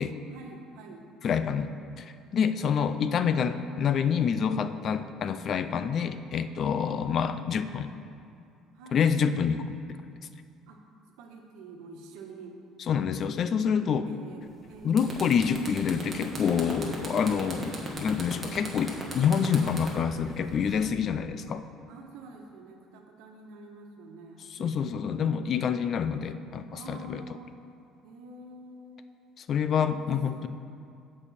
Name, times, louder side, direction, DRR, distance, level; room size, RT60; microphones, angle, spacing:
voice 1, 0.3-1.1 2.6-2.8 8.7-9.0 10.7-10.8 11.2-12.6 13.2-15.0 17.3-17.7 21.9-25.0 26.7-27.6 28.0-29.2 29.9-30.5, right 3 dB, 85° right, 2 dB, 1.2 m, -47 dB
voice 2, 1.2-1.7 2.0-7.9 8.9-10.0 12.9-14.1 14.8-21.6 24.5-27.2 29.4-30.5, left 7 dB, 40° left, 11 dB, 0.4 m, -27 dB
sound 1, 14.5-14.6 14.9-21.0, right 2 dB, 20° right, 1.5 m, -37 dB
15.5 x 5.4 x 4.2 m, 2.4 s
cardioid pair, 150°, 0 cm